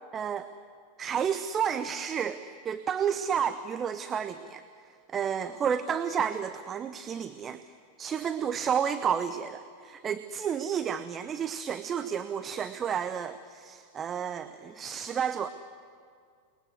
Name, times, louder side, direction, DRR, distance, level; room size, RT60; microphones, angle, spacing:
voice 1, 0.1-0.5 1.0-4.6 5.1-7.6 8.0-15.5, right 7 dB, 25° right, 11 dB, 0.8 m, -31 dB
29.0 x 21.0 x 8.0 m, 2.2 s
figure-of-eight pair, 90°, 0 cm